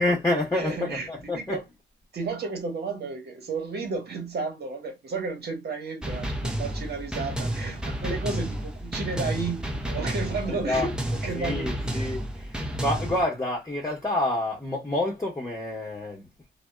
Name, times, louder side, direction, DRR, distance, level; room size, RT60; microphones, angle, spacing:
voice 1, 0.0-1.6 10.5-10.9 11.3-16.3, left 1 dB, 15° left, 1.1 m, -28 dB
voice 2, 0.5-1.1 1.3-1.6 2.1-10.9 11.2-12.0, right 4 dB, 55° right, 1.2 m, -32 dB
sound 1, 6.0-13.2, right 1 dB, 5° right, 0.7 m, -31 dB
2.6 x 2.3 x 2.3 m
supercardioid pair, 60°, 20 cm